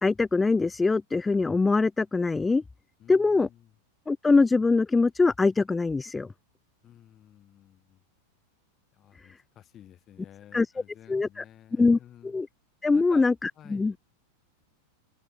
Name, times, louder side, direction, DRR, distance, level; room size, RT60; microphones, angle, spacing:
voice 1, 0.0-2.6 3.1-3.5 4.1-6.3 10.5-10.7 11.1-11.4 11.8-12.5 12.8-13.9, left 3 dB, 10° left, 0.4 m, -23 dB
voice 2, 3.0-3.7 6.8-8.0 8.9-12.3 12.9-13.2 13.5-14.0, left 11 dB, 30° left, 3.2 m, -52 dB
open air
figure-of-eight pair, 90°, 0 cm